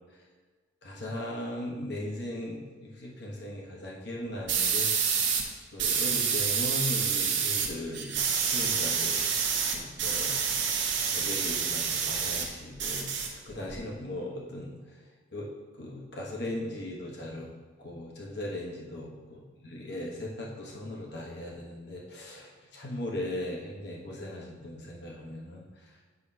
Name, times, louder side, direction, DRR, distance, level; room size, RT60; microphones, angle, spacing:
voice 1, 0.8-5.1 5.7-9.5 9.7-10.6 11.1-14.8 15.3-15.5 15.8-17.5 17.8-25.6, left 1 dB, 55° left, -3 dB, 1.3 m, -38 dB
sound 1, 4.5-5.4 5.8-7.7 7.9-12.5 12.8-13.8, right 6 dB, 60° right, 0.9 m, -28 dB
8.3 x 3.0 x 5.4 m, 1.4 s
head